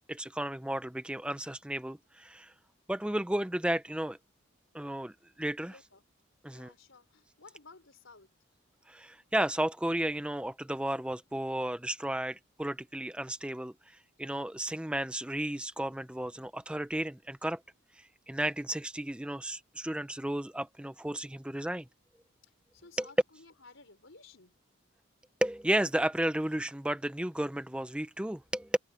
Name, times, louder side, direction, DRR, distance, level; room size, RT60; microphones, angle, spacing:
voice 1, 0.1-2.5 2.9-4.2 4.7-5.8 6.4-6.7 8.9-17.6 17.9-21.9 23.0-23.1 25.4-28.7, right 1 dB, 5° right, 0.4 m, -33 dB
voice 2, 5.7-6.0 6.4-8.3 22.4-24.5, left 4 dB, 70° left, 4.2 m, -56 dB
head